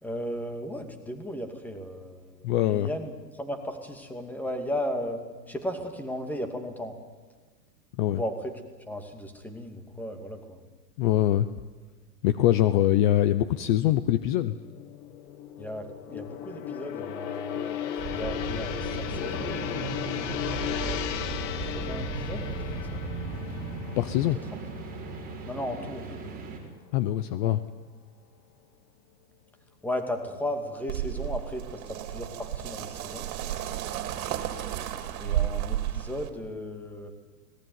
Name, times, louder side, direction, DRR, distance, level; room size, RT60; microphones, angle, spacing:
voice 1, 0.0-5.2 5.5-7.0 8.1-8.5 8.9-10.6 15.6-19.6 20.7-21.0 21.6-23.0 25.5-26.3 27.4-27.6 29.8-33.3 35.2-37.1, equal, 5° left, 6 dB, 2.5 m, -35 dB
voice 2, 2.4-2.9 8.0-8.2 11.0-11.5 12.2-14.5 24.0-24.4 26.9-27.6, left 13 dB, 30° left, 13 dB, 0.7 m, -23 dB
Gong, 14.0-26.2 26.5-26.8, left 10 dB, 45° left, 1.8 m, -36 dB
sound 1, 18.0-26.6, right 3 dB, 15° right, 4.8 m, -36 dB
sound 2, 30.9-36.3, right 12 dB, 55° right, 3.2 m, -32 dB
25.0 x 19.0 x 9.5 m, 1.4 s
hypercardioid pair, 145°, 49 cm